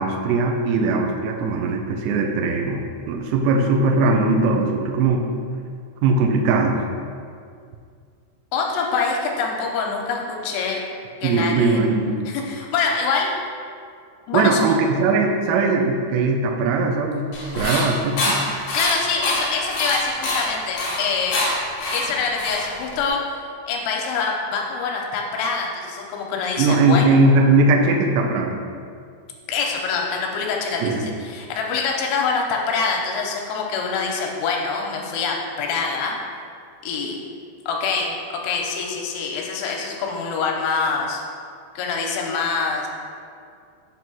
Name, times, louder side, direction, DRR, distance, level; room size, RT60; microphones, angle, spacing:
voice 1, 0.0-5.4 6.0-6.8 11.2-12.2 14.3-17.3 17.5-18.4 26.6-28.6 30.8-31.0, right 3 dB, 85° right, 2 dB, 2.5 m, -19 dB
voice 2, 8.5-10.8 11.2-11.8 12.3-13.3 14.3-14.6 18.7-21.4 21.9-23.2 23.7-27.2 29.5-36.2 36.8-37.2 37.7-38.2 38.4-41.2 41.8-42.9, left 5 dB, 90° left, 0 dB, 3.1 m, -25 dB
sound 1, 17.3-23.1, left 1 dB, 65° left, 2.1 m, -26 dB
7.6 x 2.7 x 5.9 m, 2.2 s
omnidirectional pair, 5.5 m